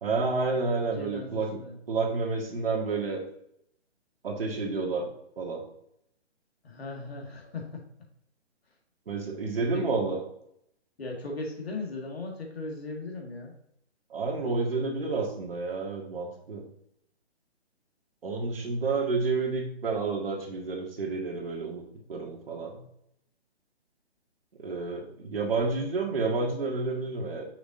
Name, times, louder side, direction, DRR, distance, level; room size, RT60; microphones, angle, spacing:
voice 1, 0.0-1.6 1.9-3.2 4.2-5.1 5.4-5.6 9.1-10.2 14.1-16.6 18.2-21.8 22.1-22.8 24.6-27.5, right 4 dB, 55° right, -1 dB, 1.9 m, -30 dB
voice 2, 0.9-1.8 6.6-7.9 9.5-9.9 11.0-13.5, left 3 dB, 60° left, 1 dB, 2.0 m, -38 dB
6.6 x 6.1 x 2.6 m, 0.74 s
figure-of-eight pair, 135°, 34 cm